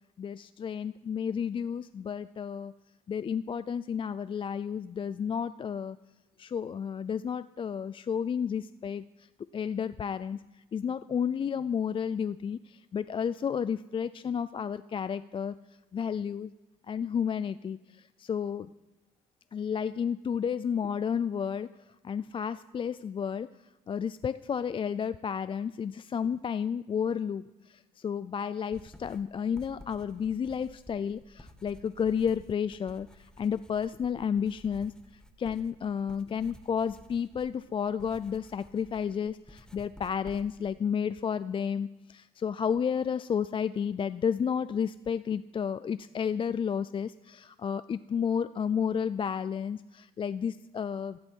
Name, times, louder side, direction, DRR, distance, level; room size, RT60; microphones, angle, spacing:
voice 1, 0.2-2.7 3.1-6.0 6.4-9.0 9.5-10.4 10.7-15.5 15.9-16.5 16.9-17.8 18.2-18.7 19.5-21.7 22.0-23.5 23.9-34.9 35.4-51.2, left 7 dB, 30° left, 14 dB, 0.4 m, -31 dB
sound 1, 28.7-40.8, left 1 dB, 5° left, 1.2 m, -53 dB
18.0 x 15.0 x 4.6 m, 1.1 s
cardioid pair, 110°, 17 cm